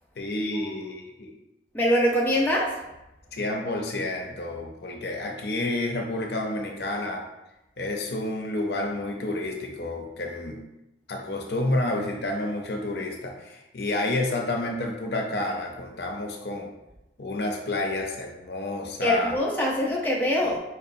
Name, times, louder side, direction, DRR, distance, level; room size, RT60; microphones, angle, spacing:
voice 1, 0.2-1.3 3.3-7.2 7.8-10.6 11.1-16.7 17.2-19.3, left 2 dB, 60° left, 1 dB, 0.6 m, -30 dB
voice 2, 1.7-2.8 19.0-20.6, equal, 10° left, -4 dB, 0.4 m, -23 dB
4.6 x 2.8 x 2.6 m, 0.92 s
head